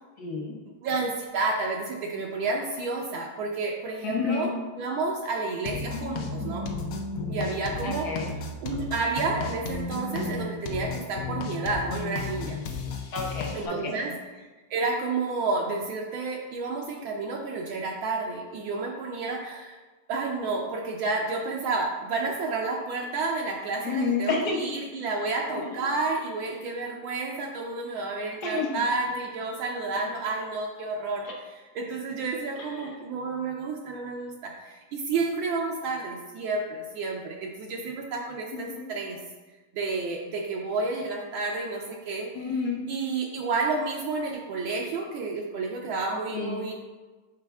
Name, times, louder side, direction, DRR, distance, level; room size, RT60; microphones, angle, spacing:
voice 1, 0.2-0.6 4.0-4.5 7.8-8.3 13.1-14.1 23.8-24.8 25.6-25.7 28.4-28.8 31.2-31.3 32.6-33.0 38.5-38.9 42.3-42.8 46.3-46.6, left 4 dB, 55° left, -1 dB, 1.3 m, -30 dB
voice 2, 0.8-6.7 7.3-8.1 8.6-12.6 13.5-14.1 14.4-19.8 20.1-39.2 39.7-42.3 42.9-46.7, right 3 dB, 75° right, -2 dB, 1.5 m, -30 dB
sound 1, 5.6-13.7, left 3 dB, 80° left, 0.7 m, -33 dB
6.8 x 5.0 x 3.4 m, 1.3 s
omnidirectional pair, 2.3 m